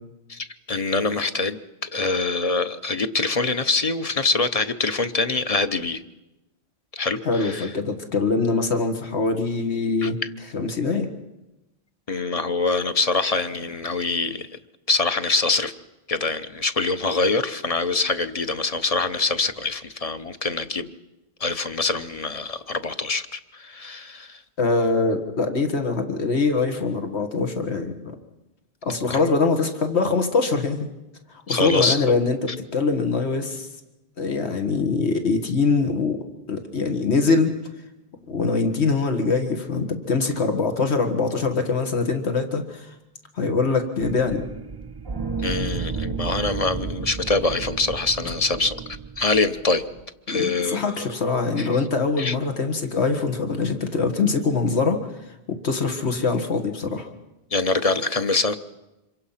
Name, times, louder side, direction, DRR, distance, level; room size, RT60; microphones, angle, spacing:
voice 1, 0.3-6.0 6.9-7.7 10.0-10.3 12.1-14.5 14.9-15.7 16.1-20.9 21.4-24.4 29.1-29.2 31.5-32.0 45.4-48.8 49.2-49.8 50.3-51.1 51.6-51.7 52.2-52.4 57.5-58.6, left 3 dB, 35° left, 10 dB, 0.9 m, -24 dB
voice 2, 7.2-10.2 10.5-11.1 24.6-28.1 28.8-30.9 31.5-33.7 34.2-36.2 36.5-37.5 38.3-42.9 43.3-44.4 50.3-55.0 55.5-57.1, left 4 dB, 85° left, 6 dB, 1.9 m, -23 dB
sound 1, 44.0-50.0, right 5 dB, 25° right, 0.7 m, -32 dB
26.5 x 23.0 x 5.7 m, 0.98 s
omnidirectional pair, 1.1 m